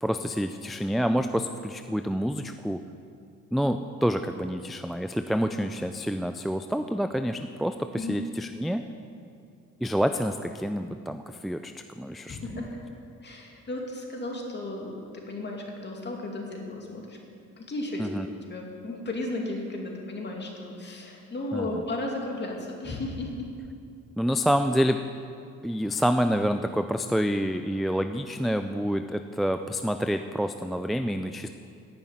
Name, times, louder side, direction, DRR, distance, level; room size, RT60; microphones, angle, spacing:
voice 1, 0.0-2.8 3.5-8.9 9.8-12.4 18.0-18.3 21.5-21.8 24.2-25.0 25.6-31.5, equal, ahead, 8 dB, 0.3 m, -28 dB
voice 2, 12.3-12.8 13.2-17.2 17.6-18.1 18.5-23.5, left 2 dB, 35° left, 0 dB, 2.5 m, -34 dB
10.0 x 7.1 x 9.3 m, 2.5 s
cardioid pair, 90°, 30 cm